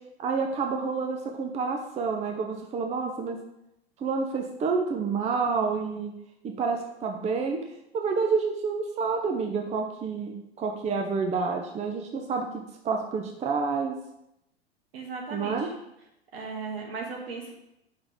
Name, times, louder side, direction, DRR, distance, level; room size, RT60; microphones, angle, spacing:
voice 1, 0.2-3.4 4.0-6.1 6.4-7.6 7.9-13.9 15.3-15.7, right 5 dB, 20° right, 3 dB, 0.7 m, -29 dB
voice 2, 14.9-15.7 16.3-17.5, right 4 dB, 70° right, 0 dB, 2.0 m, -36 dB
6.8 x 5.6 x 3.6 m, 0.83 s
figure-of-eight pair, 95°, 32 cm